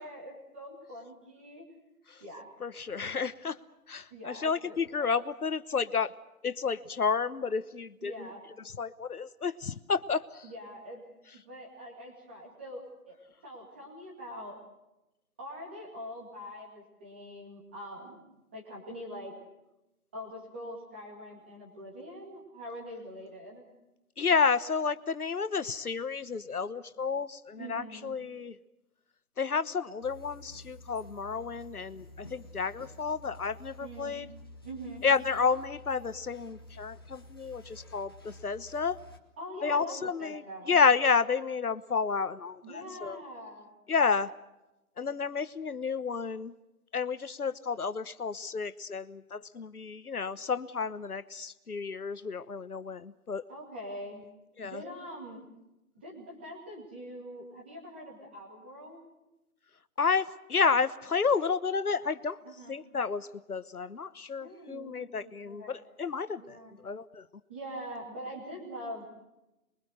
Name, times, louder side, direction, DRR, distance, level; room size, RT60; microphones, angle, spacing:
voice 1, 0.0-1.6 2.2-2.5 4.1-5.1 8.0-8.4 10.4-11.0 11.3-13.2 13.4-14.6 15.4-19.3 20.1-23.7 27.6-28.1 33.8-34.1 34.6-35.0 39.4-40.8 42.6-43.7 53.5-54.2 54.6-55.5 55.9-59.0 62.4-62.7 64.4-65.8 66.4-66.8 67.5-69.1, equal, 5° right, -2 dB, 2.1 m, -44 dB
voice 2, 2.6-3.6 3.9-6.1 6.4-8.3 8.8-10.5 24.2-28.5 29.4-34.3 35.0-39.0 39.6-40.4 40.7-43.2 43.9-44.3 45.0-46.5 46.9-53.4 54.6-54.8 60.0-62.4 62.7-66.6 66.8-67.2, left 5 dB, 75° left, 13 dB, 1.2 m, -31 dB
sound 1, 30.0-39.2, left 1 dB, 15° left, 1.3 m, -51 dB
28.0 x 23.0 x 6.6 m, 0.95 s
hypercardioid pair, 180°, 45 cm